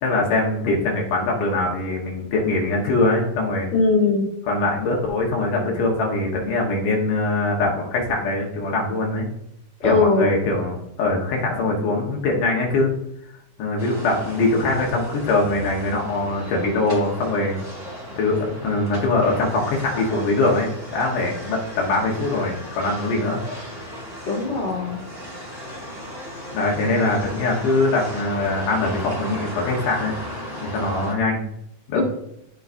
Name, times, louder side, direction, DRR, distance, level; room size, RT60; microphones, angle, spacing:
voice 1, 0.0-3.7 4.5-9.3 9.8-12.9 13.6-17.6 18.2-23.4 26.5-30.1 30.6-31.4 31.9-32.0, left 2 dB, 90° left, -1 dB, 2.8 m, -22 dB
voice 2, 3.7-4.3 9.8-10.3 24.3-25.1 31.9-32.0, left 3 dB, 40° left, -3 dB, 2.0 m, -20 dB
sound 1, 13.8-31.1, equal, 10° right, 1.4 m, -35 dB
13.5 x 4.7 x 2.6 m, 0.79 s
omnidirectional pair, 3.6 m